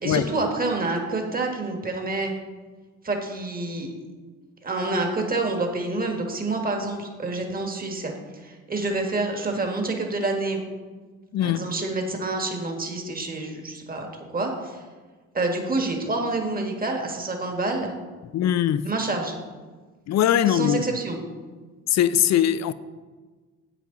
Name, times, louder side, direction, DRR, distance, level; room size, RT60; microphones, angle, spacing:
voice 1, 0.0-2.3 3.0-4.0 4.6-10.6 11.4-14.8 15.3-17.9 18.8-19.4 20.5-21.2, right 2 dB, 30° right, 1.7 m, -28 dB
voice 2, 11.3-11.7 18.3-18.9 20.1-20.8 21.9-22.7, left 10 dB, 60° left, 0.5 m, -21 dB
10.0 x 8.2 x 3.9 m
cardioid pair, 90°, 30 cm